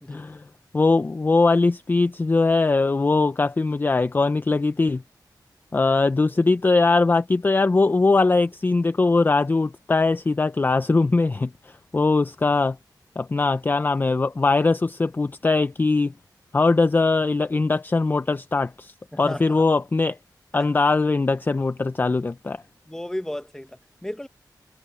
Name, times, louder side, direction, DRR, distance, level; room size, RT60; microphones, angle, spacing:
voice 1, 0.1-0.4 0.7-5.0 5.7-11.5 11.9-12.8 13.2-16.1 16.5-20.2 20.5-22.6, left 3 dB, 25° left, 0.4 m, -21 dB
voice 2, 19.1-19.7 20.5-20.7 22.9-24.3, left 1 dB, 5° left, 1.0 m, -34 dB
wide cardioid pair, 125°, 7 cm